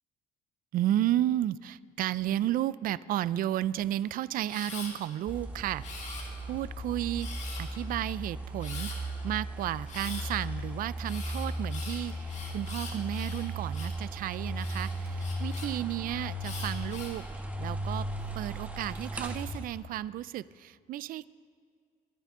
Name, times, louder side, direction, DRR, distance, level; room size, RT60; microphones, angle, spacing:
voice 1, 0.7-6.1 6.5-7.3 7.6-17.2 17.6-18.1 18.3-21.3, right 13 dB, 60° right, 19 dB, 0.4 m, -33 dB
Camera, 4.5-4.9 5.8-6.6 7.2-7.8 8.6-9.0 9.9-10.3 11.0-14.0 14.6-15.7 16.4-17.2 17.8-18.3, left 4 dB, 45° left, 4.2 m, -43 dB
sound 1, 5.3-19.7, right 1 dB, 10° right, 1.4 m, -36 dB
24.0 x 9.1 x 3.7 m, 2.2 s
cardioid pair, 110°, 17 cm